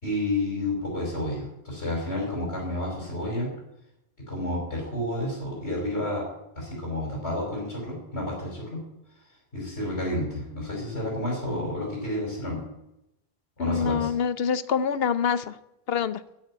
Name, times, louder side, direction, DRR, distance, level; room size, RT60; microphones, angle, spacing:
voice 1, 0.0-3.5 4.2-6.2 6.6-8.8 9.5-12.6 13.6-14.1, left 1 dB, 90° left, -3 dB, 5.2 m, -30 dB
voice 2, 13.6-15.6 15.9-16.2, left 7 dB, 70° left, 14 dB, 1.0 m, -25 dB
13.5 x 8.1 x 10.0 m, 0.87 s
omnidirectional pair, 1.1 m